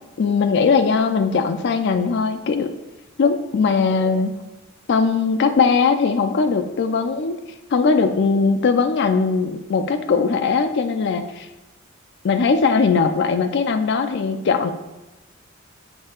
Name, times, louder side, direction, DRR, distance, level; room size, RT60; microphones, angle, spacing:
voice 1, 0.2-2.7 3.2-4.3 4.9-7.4 7.7-11.5 12.2-14.7, left 5 dB, 55° left, 8 dB, 0.4 m, -19 dB
6.6 x 3.3 x 4.4 m, 1.1 s
head